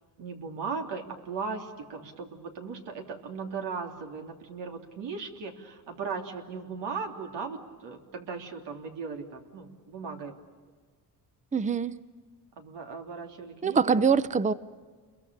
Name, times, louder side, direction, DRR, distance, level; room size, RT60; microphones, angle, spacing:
voice 1, 0.2-10.4 12.6-13.9, right 5 dB, 90° right, 3.3 m, -37 dB
voice 2, 11.5-11.9 13.6-14.5, right 5 dB, 20° right, 0.7 m, -24 dB
29.5 x 22.5 x 6.9 m
cardioid pair, 105°, 41 cm